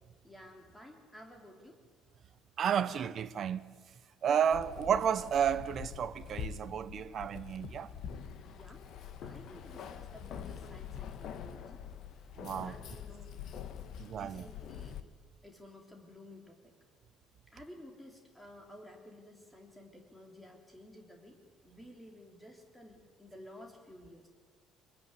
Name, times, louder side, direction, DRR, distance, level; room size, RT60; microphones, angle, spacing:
voice 1, 0.2-1.8 8.5-8.8 9.2-11.8 12.6-13.3 14.2-15.0 15.4-16.7 17.5-21.4 21.6-24.3, left 1 dB, 5° left, 3.4 m, -53 dB
voice 2, 2.6-3.6 4.2-7.9 12.4-12.8 14.0-14.5, right 8 dB, 35° right, 1.0 m, -32 dB
Keys jangling, 4.5-15.0, left 8 dB, 50° left, 1.5 m, -45 dB
27.5 x 20.5 x 9.8 m
cardioid pair, 175°, 0 cm